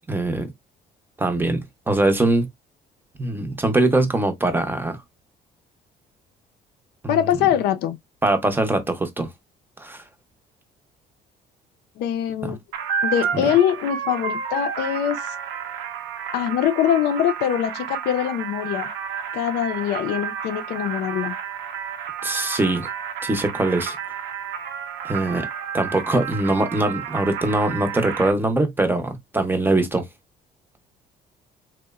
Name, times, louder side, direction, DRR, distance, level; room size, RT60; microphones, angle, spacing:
voice 1, 0.1-0.5 1.2-2.5 3.2-5.0 7.0-7.2 8.2-9.3 9.8-10.0 12.4-12.5 13.3-13.4 22.2-22.9 23.2-24.0 25.0-25.5 25.7-30.0, right 2 dB, 10° right, 0.6 m, -22 dB
voice 2, 7.1-8.0 12.0-12.6 13.0-15.3 16.3-18.9 19.3-21.4, left 10 dB, 80° left, 0.4 m, -23 dB
sound 1, 12.7-28.3, right 7 dB, 80° right, 0.6 m, -31 dB
2.9 x 2.0 x 2.3 m
cardioid pair, 110°, 17 cm